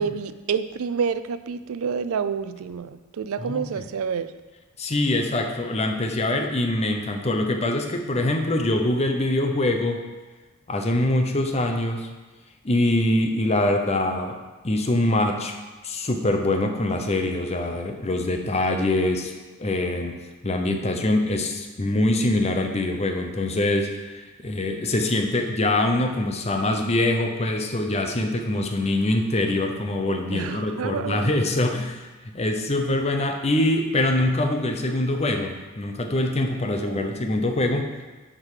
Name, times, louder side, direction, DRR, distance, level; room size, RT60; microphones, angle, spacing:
voice 1, 0.0-4.3 30.3-31.3 36.7-37.2, right 6 dB, 80° right, 12 dB, 0.4 m, -28 dB
voice 2, 4.8-10.0 10.7-12.1 12.6-14.4 14.6-15.5 15.8-19.3 19.6-20.1 20.4-37.9, left 1 dB, 30° left, 4 dB, 0.7 m, -24 dB
10.5 x 3.8 x 4.9 m, 1.2 s
head